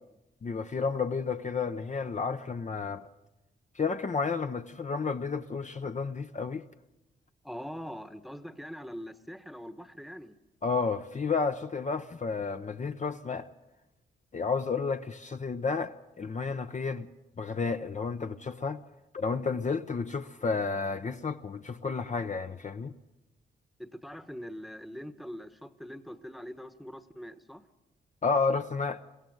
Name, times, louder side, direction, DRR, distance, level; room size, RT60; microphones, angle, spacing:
voice 1, 0.4-3.1 3.7-6.6 10.6-13.5 14.3-17.1 17.4-18.8 19.1-22.9 28.2-29.0, left 4 dB, 35° left, 0.7 m, -31 dB
voice 2, 7.4-10.3 23.8-27.6, equal, ahead, 1.1 m, -43 dB
22.5 x 16.0 x 7.9 m
cardioid pair, 80°, 20 cm